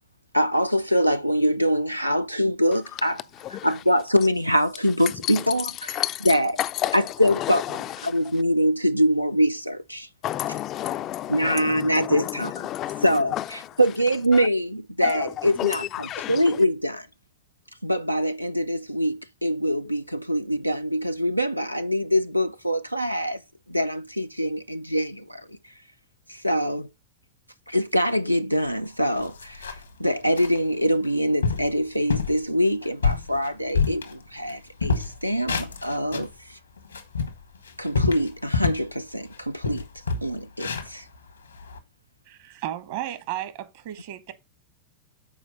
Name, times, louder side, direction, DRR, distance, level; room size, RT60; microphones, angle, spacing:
voice 1, 0.3-3.2 3.6-6.5 6.9-7.6 8.0-10.1 11.3-12.5 13.0-17.1 17.8-23.4 23.7-25.6 26.3-26.9 27.7-36.6 37.8-39.9 40.2-41.1, equal, 90° right, 0.4 m, -24 dB
voice 2, 3.3-3.8 5.0-8.4 10.2-13.8 14.3-14.5 15.0-16.6, left 13 dB, 35° left, 0.4 m, -31 dB
sound 1, 28.7-28.8 29.1-29.9 30.4-30.6 31.0-31.1 31.4-31.7 32.1-32.4 32.8-34.5 34.8-36.3 36.8-38.9 39.3-39.4 39.6-41.8, left 5 dB, 75° left, 1.1 m, -27 dB
voice 3, 42.3-44.3, right 13 dB, 50° right, 1.0 m, -34 dB
7.1 x 4.6 x 5.6 m
figure-of-eight pair, 90°, 0 cm